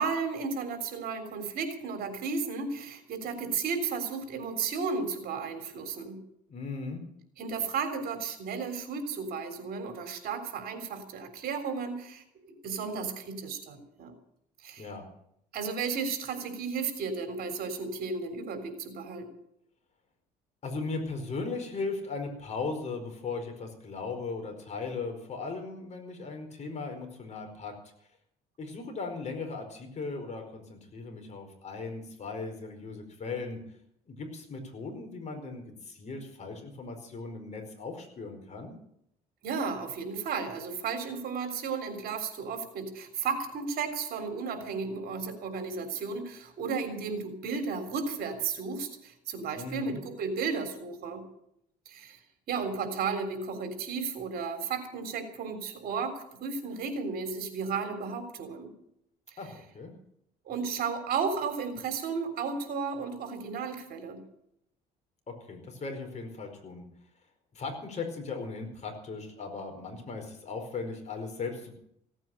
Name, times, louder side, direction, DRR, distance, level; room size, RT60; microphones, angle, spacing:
voice 1, 0.0-6.2 7.4-14.1 14.6-14.9 15.5-19.3 39.4-51.2 51.9-52.2 52.5-58.7 60.5-64.2, right 5 dB, 65° right, 6 dB, 3.6 m, -34 dB
voice 2, 6.5-7.0 14.8-15.0 20.6-27.7 28.6-33.6 34.1-38.7 49.5-50.0 59.4-59.9 65.3-66.8 67.5-71.7, left 4 dB, 40° left, 4 dB, 4.9 m, -37 dB
16.5 x 9.0 x 9.1 m, 0.74 s
cardioid pair, 110°, 17 cm